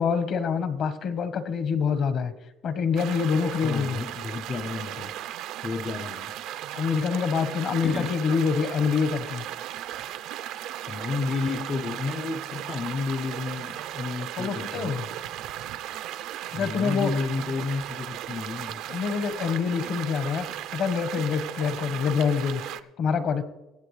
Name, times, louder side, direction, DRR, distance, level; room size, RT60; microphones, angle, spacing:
voice 1, 0.0-2.3 2.6-4.0 6.7-9.4 14.4-15.0 16.5-17.1 18.9-20.5 20.7-22.7 23.0-23.4, left 6 dB, 50° left, 12 dB, 1.1 m, -26 dB
sound 1, 3.0-22.8, right 12 dB, 70° right, 0.6 m, -36 dB
voice 2, 3.6-5.2 5.6-6.3 7.8-8.2 10.9-15.1 16.5-18.8, left 4 dB, 30° left, 9 dB, 0.6 m, -31 dB
23.5 x 8.4 x 3.2 m, 1.0 s
cardioid pair, 125°, 0 cm